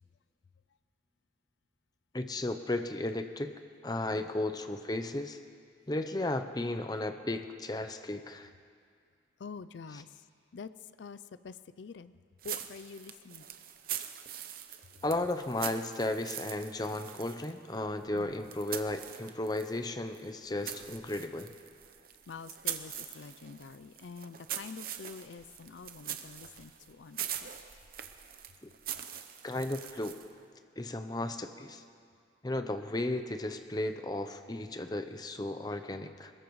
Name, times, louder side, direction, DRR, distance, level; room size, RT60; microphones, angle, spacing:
voice 1, 2.1-3.5 3.8-5.4 5.9-8.5 9.9-10.0 15.0-21.5 28.6-28.7 29.4-30.2 30.8-31.8 32.4-36.3, left 2 dB, 20° left, 8 dB, 0.7 m, -34 dB
voice 2, 9.4-10.1 10.5-10.7 11.0-12.2 12.4-13.4 18.1-18.4 22.3-27.5, left 5 dB, 70° left, 15 dB, 0.4 m, -46 dB
sound 1, 12.4-19.8 20.1-30.4, right 10 dB, 50° right, 0.8 m, -43 dB
21.5 x 21.0 x 3.2 m, 2.2 s
head